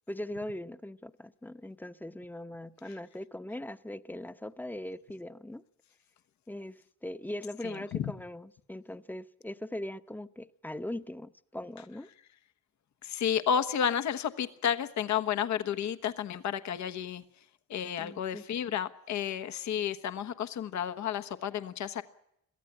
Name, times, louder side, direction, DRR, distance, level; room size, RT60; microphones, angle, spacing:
voice 1, 0.1-5.6 6.5-12.1 18.0-18.4, left 1 dB, 5° left, 12 dB, 0.9 m, -40 dB
voice 2, 7.6-8.1 13.0-17.2 17.7-22.0, left 8 dB, 70° left, 10 dB, 1.3 m, -31 dB
22.5 x 15.0 x 9.8 m, 0.77 s
cardioid pair, 90°, 30 cm